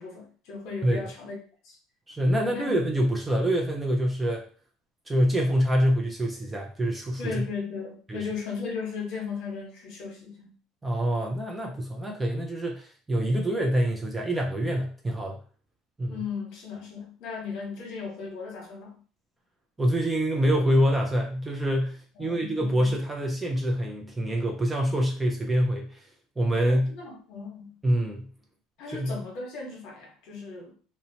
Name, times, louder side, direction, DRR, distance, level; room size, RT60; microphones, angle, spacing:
voice 1, 0.0-1.4 1.6-1.8 2.4-2.8 7.2-10.5 16.1-19.0 22.2-22.8 26.7-27.7 28.8-30.7, left 5 dB, 55° left, 0 dB, 1.0 m, -36 dB
voice 2, 2.1-4.4 5.1-7.4 8.1-8.2 10.8-15.4 16.0-16.2 19.8-26.0 26.4-26.9 27.8-28.3 28.9-29.1, equal, 10° right, 0 dB, 0.3 m, -26 dB
2.8 x 2.0 x 2.7 m, 0.41 s
cardioid pair, 170°, 0 cm